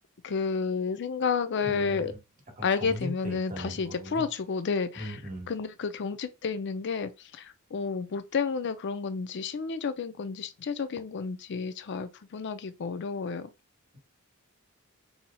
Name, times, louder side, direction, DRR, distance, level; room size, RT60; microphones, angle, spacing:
voice 1, 0.2-2.1 2.6-5.2 5.5-13.5, left 5 dB, 55° left, 0.5 m, -31 dB
voice 2, 1.6-2.2 2.6-4.3 4.9-5.5, equal, 35° right, 1.2 m, -39 dB
4.2 x 2.8 x 2.2 m
head